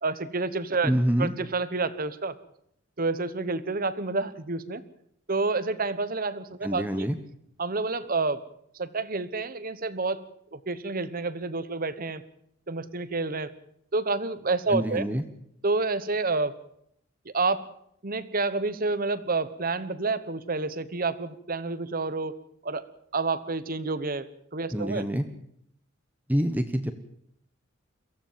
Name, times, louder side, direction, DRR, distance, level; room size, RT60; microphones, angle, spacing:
voice 1, 0.0-0.9 1.2-2.4 3.0-4.8 5.3-7.1 7.6-8.4 8.7-10.2 10.5-12.2 12.7-13.5 13.9-15.0 15.6-16.5 17.2-17.7 18.0-22.4 22.6-22.9 23.1-24.2 24.5-25.0, right 3 dB, 45° right, 14 dB, 1.1 m, -29 dB
voice 2, 0.8-1.3 6.6-7.2 14.7-15.2 24.7-25.2 26.3-26.9, equal, 10° right, 8 dB, 1.0 m, -26 dB
23.0 x 15.5 x 7.5 m, 0.71 s
head